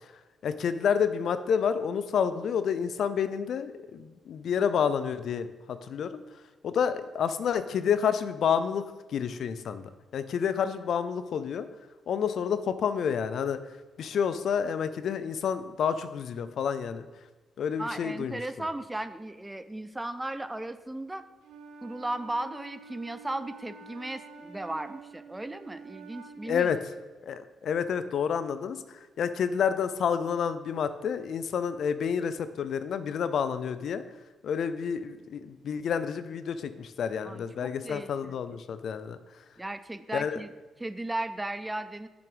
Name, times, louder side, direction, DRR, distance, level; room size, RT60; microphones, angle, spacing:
voice 1, 0.4-6.2 6.6-11.7 12.1-13.6 14.0-17.1 17.6-18.4 26.5-26.8 27.2-34.0 34.4-39.2 40.1-40.4, left 7 dB, 65° left, 12 dB, 0.5 m, -29 dB
voice 2, 17.8-21.2 21.8-26.7 37.2-38.4 39.6-40.5 40.8-42.1, right 1 dB, 15° right, 13 dB, 0.4 m, -36 dB
Wind instrument woodwind instrument, 21.4-26.6, right 4 dB, 90° right, 0.9 m, -48 dB
7.1 x 6.0 x 5.0 m, 1.2 s
cardioid pair, 90°, 0 cm